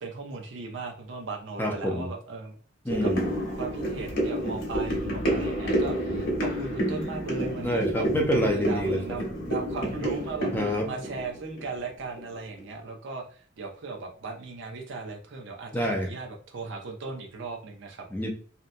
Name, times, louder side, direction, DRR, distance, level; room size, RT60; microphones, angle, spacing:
voice 1, 0.0-2.6 2.9-3.1 3.6-8.1 8.4-10.5 10.8-18.1, right 4 dB, 65° right, 3 dB, 0.6 m, -37 dB
voice 2, 1.6-2.1 2.9-3.3 7.6-9.0 10.5-10.9 15.7-16.1 18.1-18.3, equal, 10° left, 1 dB, 0.4 m, -27 dB
sound 1, 2.9-12.2 12.6-12.7, right 1 dB, 55° left, 0.9 m, -29 dB
2.8 x 2.1 x 2.5 m, 0.43 s
head